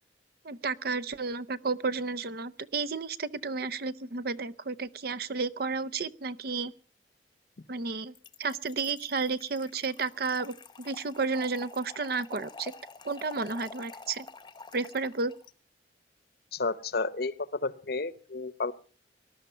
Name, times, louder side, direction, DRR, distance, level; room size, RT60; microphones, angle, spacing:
voice 1, 0.4-6.7 7.7-8.1 8.4-12.7 13.0-14.3 14.7-15.3, right 4 dB, 55° right, 17 dB, 0.7 m, -32 dB
Trickle dribble / Fill (with liquid), 8.1-15.5, left 4 dB, 25° left, 0.8 m, -48 dB
voice 2, 16.5-18.7, left 3 dB, 55° left, 17 dB, 0.8 m, -32 dB
19.5 x 12.0 x 5.6 m, 0.41 s
head